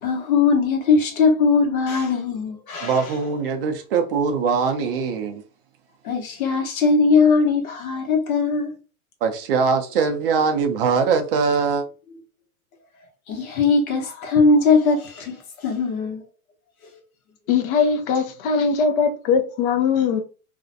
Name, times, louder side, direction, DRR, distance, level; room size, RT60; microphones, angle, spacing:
voice 1, 0.0-3.1 6.0-8.7 13.3-16.2, left 4 dB, 75° left, 1.0 m, -20 dB
voice 2, 2.8-5.4 9.2-11.8, right 5 dB, 40° right, 0.4 m, -22 dB
voice 3, 17.5-20.2, left 5 dB, 40° left, 0.5 m, -20 dB
2.5 x 2.1 x 2.6 m
hypercardioid pair, 145°, 43 cm